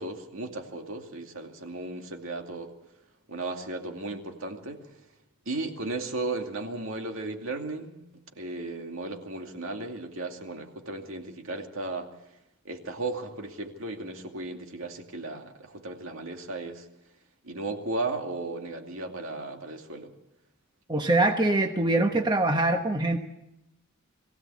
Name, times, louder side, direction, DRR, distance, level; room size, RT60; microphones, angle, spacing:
voice 1, 0.0-2.7 3.3-5.0 5.5-12.1 12.6-16.9 17.4-20.1, right 2 dB, 65° right, 3 dB, 2.4 m, -35 dB
voice 2, 20.9-23.2, right 2 dB, 20° right, 4 dB, 1.1 m, -23 dB
22.5 x 16.5 x 8.5 m, 0.91 s
head